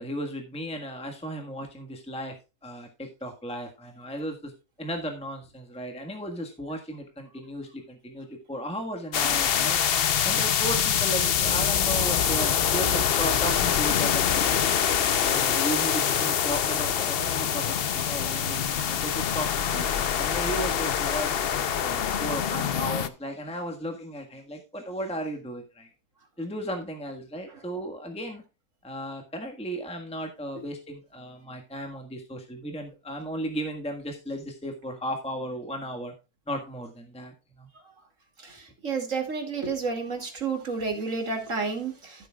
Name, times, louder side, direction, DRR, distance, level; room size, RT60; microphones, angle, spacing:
voice 1, 0.0-2.3 2.6-4.5 4.8-9.8 10.2-14.6 15.2-25.9 26.4-28.4 28.8-36.1 36.5-37.7 40.9-41.0, equal, 5° left, 3 dB, 1.4 m, -35 dB
sound 1, 9.1-23.1, left 8 dB, 55° left, 0.7 m, -25 dB
voice 2, 38.4-42.3, right 4 dB, 55° right, 4 dB, 2.8 m, -31 dB
14.0 x 8.2 x 2.3 m, 0.29 s
omnidirectional pair, 1.6 m